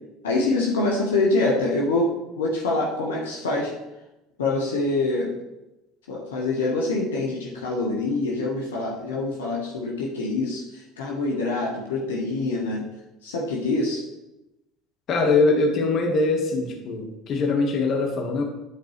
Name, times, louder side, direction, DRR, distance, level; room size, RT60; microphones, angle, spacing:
voice 1, 0.2-3.7 4.4-5.3 6.1-12.9 13.2-14.0, left 2 dB, 80° left, -2 dB, 1.2 m, -25 dB
voice 2, 15.1-18.4, left 3 dB, 50° left, 2 dB, 1.5 m, -22 dB
9.9 x 4.5 x 3.2 m, 0.95 s
hypercardioid pair, 70°, 0 cm